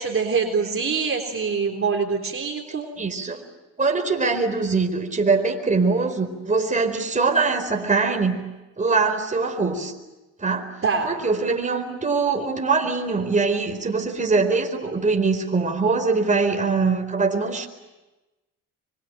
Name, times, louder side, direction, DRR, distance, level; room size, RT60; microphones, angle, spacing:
voice 1, 0.0-2.9 10.8-11.1, right 5 dB, 40° right, 3 dB, 3.7 m, -24 dB
voice 2, 3.0-3.4 3.8-8.4 8.8-9.9 10.4-10.7 11.0-17.7, right 4 dB, 25° right, 4 dB, 4.4 m, -22 dB
25.0 x 24.0 x 9.1 m, 1.1 s
cardioid pair, 80°, 32 cm